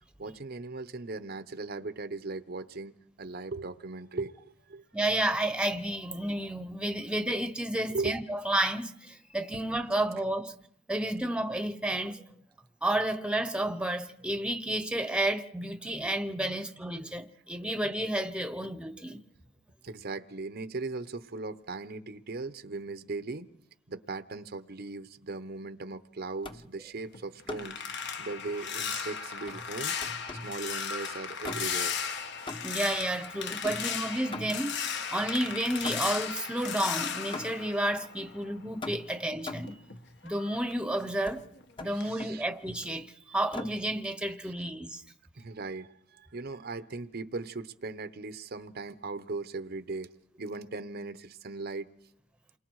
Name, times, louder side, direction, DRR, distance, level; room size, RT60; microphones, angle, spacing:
voice 1, 0.2-4.8 7.9-8.2 19.8-23.5 23.9-27.8 28.2-32.3 41.8-42.5 44.4-44.5 45.4-50.1 50.4-51.9, right 3 dB, 50° right, 0.9 m, -38 dB
voice 2, 4.9-10.5 10.9-12.2 12.8-19.2 32.6-39.8 40.2-41.4 41.8-45.0, right 1 dB, 5° right, 1.0 m, -31 dB
sound 1, 26.4-26.8 27.5-27.8 29.5-30.6 31.4-31.9 32.5-32.9 33.6-34.8 35.8-36.3 37.3-37.8 38.8-39.8 41.3-41.4 41.8-42.4 43.5-43.9, left 2 dB, 25° left, 1.1 m, -41 dB
sound 2, 27.0-38.6 39.0-41.6 42.0-42.3 42.7-42.9, left 6 dB, 60° left, 1.6 m, -36 dB
28.5 x 22.5 x 4.8 m
head